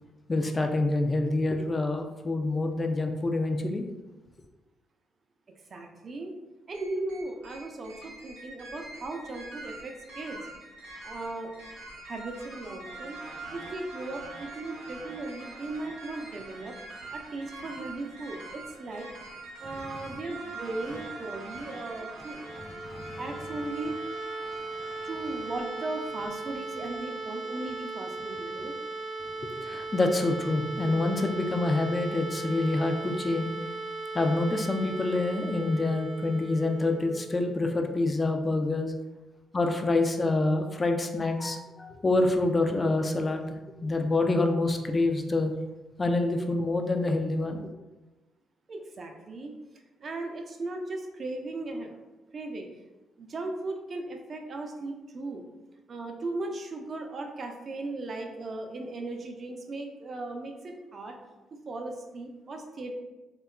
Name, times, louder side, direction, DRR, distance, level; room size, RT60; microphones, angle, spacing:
voice 1, 0.3-3.9 22.6-23.2 24.8-25.0 29.4-33.5 34.1-38.9 39.5-43.4 43.8-45.5 46.0-47.7, left 2 dB, 30° left, 5 dB, 0.4 m, -27 dB
voice 2, 5.7-6.3 6.7-10.4 11.0-11.5 12.0-13.2 13.5-16.8 17.1-19.1 19.6-22.5 23.2-24.0 25.0-28.7 48.7-49.5 50.0-52.0 52.3-52.7 53.2-55.4 55.9-61.2 61.7-62.9, right 2 dB, 50° right, 3 dB, 0.4 m, -37 dB
sound 1, 6.7-26.2, right 2 dB, 85° right, 0.6 m, -44 dB
sound 2, 22.4-38.1, right 3 dB, 50° left, 0.8 m, -38 dB
2.7 x 2.2 x 2.3 m, 1.1 s
hypercardioid pair, 50°, 0 cm